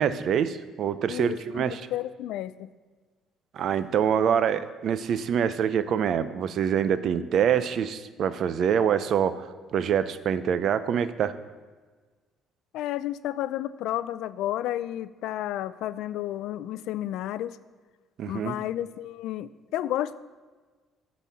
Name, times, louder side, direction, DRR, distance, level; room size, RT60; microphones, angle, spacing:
voice 1, 0.0-1.8 3.5-11.3 18.2-18.5, right 8 dB, 60° right, 13 dB, 0.6 m, -25 dB
voice 2, 1.1-2.7 12.7-17.6 18.3-20.1, left 13 dB, 80° left, 16 dB, 0.4 m, -32 dB
12.0 x 4.2 x 7.4 m, 1.4 s
cardioid pair, 95°, 0 cm